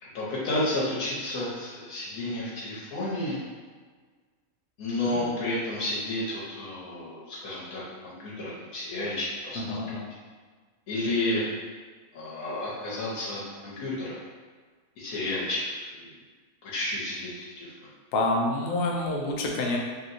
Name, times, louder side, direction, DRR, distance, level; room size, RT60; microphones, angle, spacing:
voice 1, 0.0-3.4 4.8-9.9 10.9-11.4 12.1-14.2 15.0-15.6 15.9-16.1 16.6-17.7, left 1 dB, 85° left, -8 dB, 1.2 m, -31 dB
voice 2, 9.6-10.0 18.1-19.8, left 2 dB, 65° left, -1 dB, 0.6 m, -27 dB
3.0 x 2.8 x 2.5 m, 1.5 s
omnidirectional pair, 1.4 m